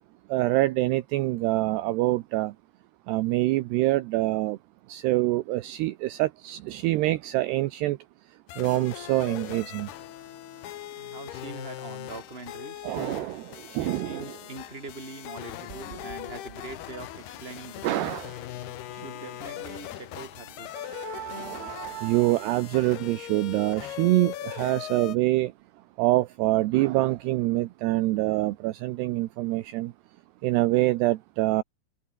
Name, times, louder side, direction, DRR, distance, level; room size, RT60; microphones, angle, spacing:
voice 1, 0.3-2.5 3.1-4.6 4.9-8.0 8.6-9.9 12.8-14.3 17.8-18.3 20.8-25.5 26.0-29.9 30.4-31.6, right 17 dB, 80° right, 2.4 m, -25 dB
sound 1, 8.5-25.2, left 13 dB, 65° left, 2.8 m, -40 dB
voice 2, 11.0-12.9 13.7-18.1 18.9-21.0, right 3 dB, 15° right, 3.6 m, -43 dB
open air
omnidirectional pair, 5.8 m